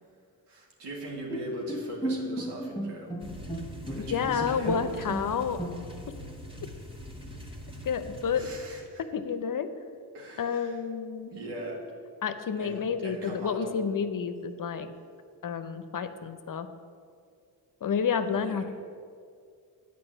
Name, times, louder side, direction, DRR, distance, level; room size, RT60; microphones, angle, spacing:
voice 1, 0.5-3.1 3.8-5.3 8.3-9.0 10.1-10.8 11.3-11.8 12.6-13.8 18.3-18.7, right 1 dB, 80° right, -1 dB, 2.1 m, -40 dB
Bowed string instrument, 1.3-6.2, right 1 dB, 10° left, 1.0 m, -35 dB
sound 1, 3.2-8.9, left 1 dB, 15° right, 1.6 m, -43 dB
voice 2, 4.0-5.6 7.8-8.5 9.1-9.7 10.4-11.3 12.2-14.9 15.4-16.7 17.8-18.7, left 6 dB, 50° left, 10 dB, 0.8 m, -30 dB
8.7 x 5.4 x 7.7 m, 2.2 s
supercardioid pair, 55°, 41 cm